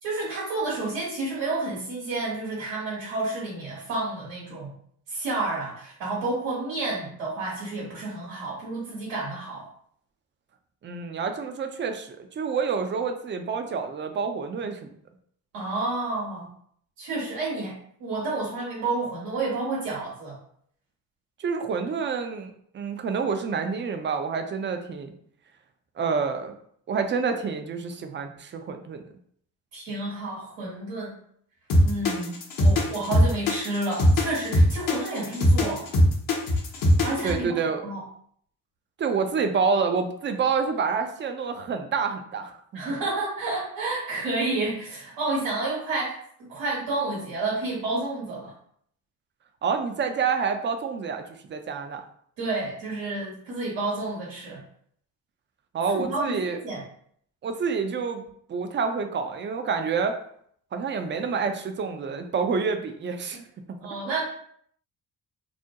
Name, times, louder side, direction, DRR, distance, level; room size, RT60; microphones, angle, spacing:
voice 1, 0.0-4.7 5.1-9.7 15.5-16.5 17.0-17.7 18.0-20.4 29.7-31.1 31.8-35.9 37.0-37.6 37.8-38.0 42.7-46.2 46.5-48.5 52.4-54.6 55.9-56.8 63.8-64.2, right 2 dB, 75° right, -5 dB, 1.0 m, -30 dB
voice 2, 10.8-14.9 21.4-25.1 26.0-26.5 26.9-29.1 37.2-37.9 39.0-43.0 49.6-52.0 55.7-56.6 57.4-60.2 60.7-63.4 64.1-64.2, right 5 dB, 25° right, 6 dB, 0.4 m, -28 dB
sound 1, 31.7-37.3, left 1 dB, 45° left, 0.8 m, -20 dB
2.4 x 2.1 x 2.7 m, 0.64 s
hypercardioid pair, 45°, 46 cm